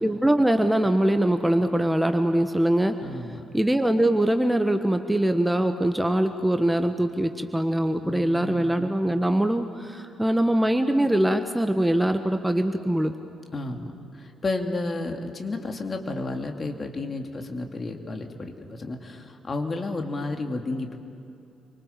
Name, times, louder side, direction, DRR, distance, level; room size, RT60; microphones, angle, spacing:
voice 1, 0.0-3.0 3.5-13.1, right 1 dB, 10° right, 8 dB, 1.4 m, -23 dB
voice 2, 3.0-3.4 8.0-8.8 13.5-21.0, left 2 dB, 35° left, 4 dB, 2.7 m, -32 dB
29.0 x 25.0 x 7.3 m, 2.7 s
figure-of-eight pair, 40°, 0 cm